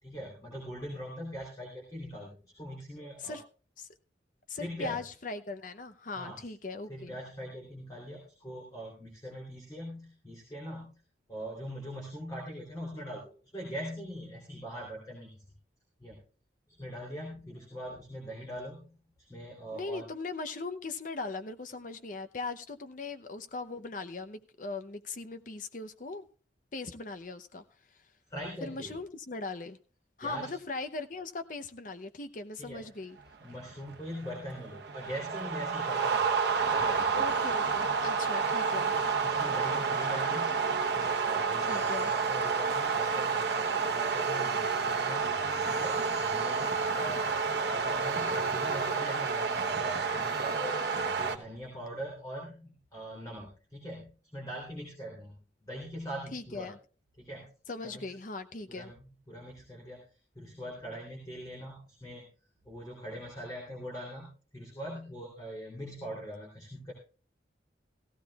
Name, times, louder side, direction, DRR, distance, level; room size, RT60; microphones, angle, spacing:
voice 1, 0.0-3.4 4.6-5.0 6.2-6.5 6.9-10.9 11.3-15.4 16.0-16.2 16.7-19.0 19.3-20.1 28.3-28.9 30.2-30.5 32.6-32.9 33.4-36.3 36.7-37.1 38.9-45.3 45.7-47.3 47.7-50.8 51.2-56.7 57.2-57.5 57.8-58.1 58.7-62.2 62.6-66.9, equal, 20° left, 3.3 m, -42 dB
voice 2, 4.5-7.2 19.7-26.3 26.7-27.6 28.6-29.8 30.2-33.2 37.1-38.9 41.6-42.1 56.3-56.8 57.7-58.9, left 3 dB, 45° left, 0.7 m, -39 dB
sound 1, 33.4-51.4, right 5 dB, 60° right, 1.0 m, -30 dB
16.5 x 15.0 x 2.4 m
head